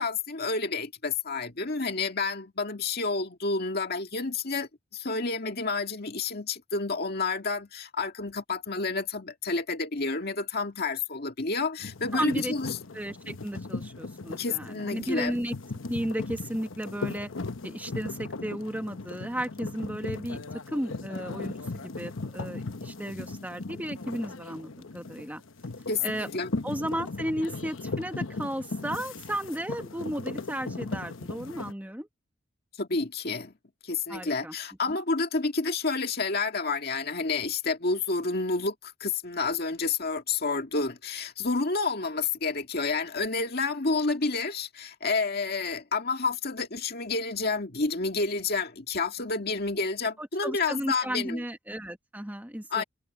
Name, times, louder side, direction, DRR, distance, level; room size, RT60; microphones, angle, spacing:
voice 1, 0.0-12.8 14.4-15.4 25.9-26.5 32.8-33.5 33.8-51.4 52.7-52.8, left 4 dB, 50° left, 2.0 m, -29 dB
sound 1, 11.8-31.7, left 3 dB, 75° left, 1.0 m, -38 dB
voice 2, 12.1-12.5 12.9-15.5 15.9-17.3 17.6-20.4 20.7-25.4 26.0-26.3 26.6-32.1 34.1-34.5 34.9-35.0 50.2-52.8, right 1 dB, 10° right, 1.4 m, -34 dB
head